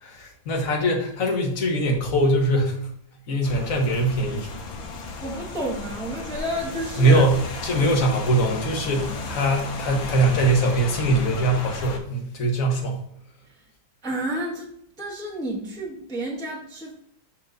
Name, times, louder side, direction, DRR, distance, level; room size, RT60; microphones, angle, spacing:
voice 1, 0.0-2.8 3.3-4.5 7.0-7.4 7.6-13.0, right 1 dB, 45° left, 1 dB, 1.4 m, -22 dB
Rain, 3.4-12.0, left 3 dB, 75° left, 1.6 m, -35 dB
voice 2, 5.2-7.2 13.5-13.6 14.0-14.7 15.0-16.9, right 1 dB, 5° left, -3 dB, 0.9 m, -30 dB
5.8 x 4.5 x 3.9 m, 0.70 s
omnidirectional pair, 2.2 m